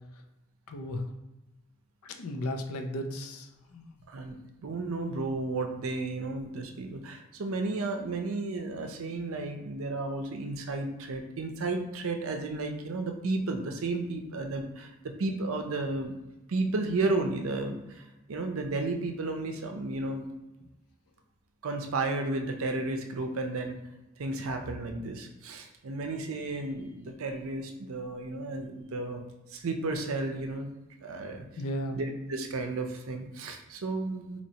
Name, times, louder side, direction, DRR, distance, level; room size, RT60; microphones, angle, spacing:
voice 1, 0.7-1.1 2.0-3.9 31.6-32.0, left 1 dB, 80° left, 5 dB, 0.5 m, -35 dB
voice 2, 4.1-14.9 15.2-16.1 16.5-20.3 21.6-23.8 24.2-29.2 29.5-30.7 31.0-31.5 31.9-34.4, right 2 dB, 70° right, 5 dB, 0.5 m, -33 dB
4.2 x 2.9 x 2.8 m, 0.99 s
head